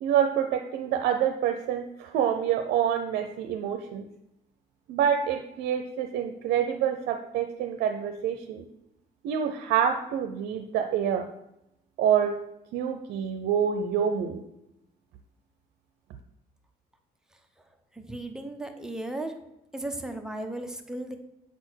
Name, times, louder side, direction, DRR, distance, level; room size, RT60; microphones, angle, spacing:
voice 1, 0.0-4.1 4.9-8.7 9.2-11.3 12.0-12.4 12.7-14.4, right 8 dB, 80° right, 6 dB, 0.6 m, -27 dB
voice 2, 17.9-19.3 19.7-21.2, right 1 dB, 5° right, 4 dB, 0.9 m, -35 dB
7.9 x 4.3 x 6.3 m, 0.87 s
cardioid pair, 110°, 17 cm